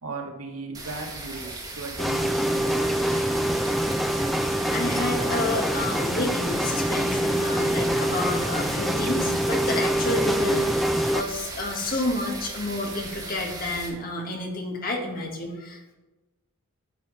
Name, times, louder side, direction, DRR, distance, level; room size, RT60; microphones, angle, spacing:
voice 1, 0.0-3.0, right 3 dB, 90° right, 1.9 m, -37 dB
sound 1, 0.7-13.9, right 2 dB, 15° right, 2.0 m, -38 dB
sound 2, 2.0-11.2, right 1 dB, ahead, 0.4 m, -25 dB
voice 2, 4.7-15.9, left 2 dB, 40° left, 1.8 m, -30 dB
9.5 x 7.2 x 4.1 m
head